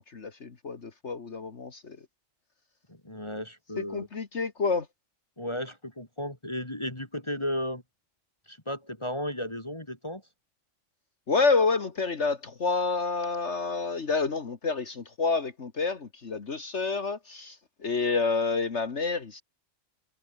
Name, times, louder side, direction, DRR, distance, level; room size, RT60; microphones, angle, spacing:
voice 1, 0.1-2.0 3.8-4.9 11.3-17.6 17.8-19.4, left 4 dB, 55° left, 2.0 m, -28 dB
voice 2, 2.9-4.1 5.4-7.8 8.5-10.2, left 1 dB, 20° left, 3.1 m, -34 dB
omnidirectional pair, 1.4 m